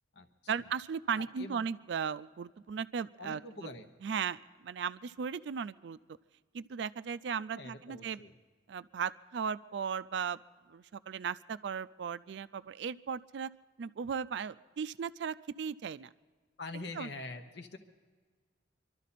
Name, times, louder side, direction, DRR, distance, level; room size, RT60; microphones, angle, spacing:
voice 1, 0.5-3.7 4.0-6.0 6.5-8.2 8.7-10.4 10.7-13.5 13.8-16.1 16.7-17.1, right 6 dB, 65° right, 14 dB, 0.4 m, -37 dB
voice 2, 1.2-1.7 3.2-3.9 7.5-8.3 16.6-17.8, left 3 dB, 65° left, 7 dB, 0.9 m, -44 dB
25.5 x 12.5 x 4.2 m, 1.5 s
head